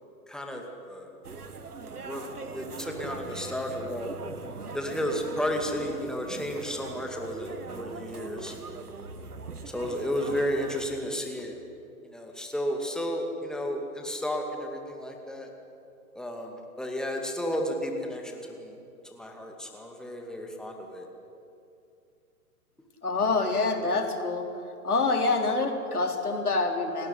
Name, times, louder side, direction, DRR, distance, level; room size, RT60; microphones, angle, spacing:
voice 1, 0.3-1.1 2.0-4.2 4.7-8.8 9.7-11.5 12.0-15.5 16.1-18.7 19.1-21.1, equal, ahead, 2 dB, 2.3 m, -33 dB
sound 1, 1.2-10.9, right 4 dB, 75° right, 1.6 m, -41 dB
voice 2, 23.0-24.5 24.8-27.1, left 3 dB, 75° left, 3 dB, 3.6 m, -26 dB
28.5 x 12.5 x 9.9 m, 2.6 s
figure-of-eight pair, 120°, 45 cm